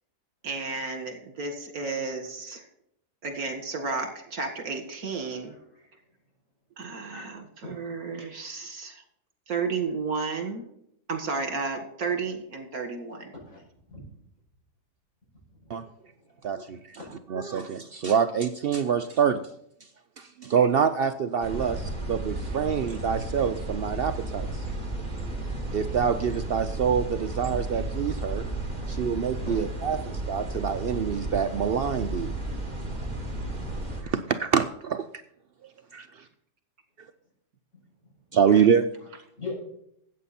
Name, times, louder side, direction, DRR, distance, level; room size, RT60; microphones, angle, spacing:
voice 1, 0.4-2.7 3.2-5.9 6.8-9.0 9.5-10.7 11.1-13.3 22.9-23.0 36.1-36.3 38.3-38.6, right 4 dB, 65° right, 6 dB, 2.2 m, -33 dB
voice 2, 7.6-8.0 13.3-14.0 15.5-15.7 16.2-17.0 17.5-17.6 27.5-27.7 28.8-29.1 29.4-29.9 37.7-37.8 39.4-39.5, left 3 dB, 50° left, -3 dB, 6.2 m, -42 dB
voice 3, 16.4-17.0 17.3-19.4 20.2-24.7 25.7-28.5 28.9-32.3 34.0-35.1 35.9-36.1 38.3-38.8, right 7 dB, 90° right, 9 dB, 0.5 m, -26 dB
sound 1, 21.4-34.0, right 2 dB, 25° right, 2.6 m, -33 dB
14.0 x 8.5 x 4.2 m, 0.73 s
omnidirectional pair, 1.7 m